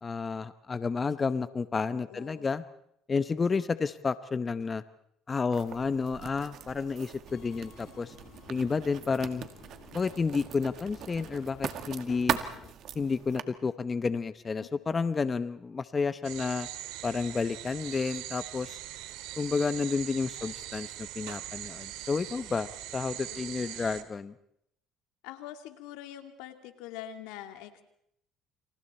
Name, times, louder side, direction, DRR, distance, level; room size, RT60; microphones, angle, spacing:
voice 1, 0.0-2.6 3.1-4.8 5.3-8.1 8.5-9.5 9.9-12.4 12.9-16.7 17.0-18.8 19.4-24.3, left 4 dB, 30° left, 13 dB, 0.8 m, -31 dB
voice 2, 1.9-2.5 14.6-14.7 20.4-20.5 23.3-23.9 25.2-27.8, left 11 dB, 85° left, 7 dB, 2.4 m, -45 dB
Writing, 5.5-13.4, right 9 dB, 60° right, 1.9 m, -40 dB
Subway metro underground, 7.3-12.7, left 10 dB, 65° left, 1.5 m, -53 dB
sound 1, 16.2-24.0, right 14 dB, 80° right, 2.0 m, -41 dB
29.5 x 27.0 x 4.4 m, 0.73 s
supercardioid pair, 95°, 0 cm